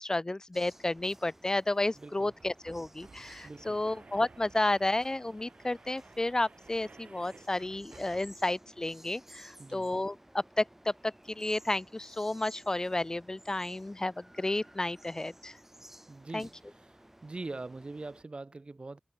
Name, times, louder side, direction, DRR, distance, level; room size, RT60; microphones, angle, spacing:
voice 1, 0.0-15.5 16.3-16.5, left 2 dB, 30° left, 0.4 m, -32 dB
sound 1, 0.5-18.2, right 1 dB, 15° right, 1.8 m, -56 dB
sound 2, 1.0-1.1 1.3-1.4 2.2-8.6, right 4 dB, 75° right, 1.7 m, -56 dB
voice 2, 2.0-2.3 3.4-3.8 9.6-9.9 16.1-16.5 17.2-19.0, right 3 dB, 50° right, 0.9 m, -42 dB
wide cardioid pair, 75°, 2 cm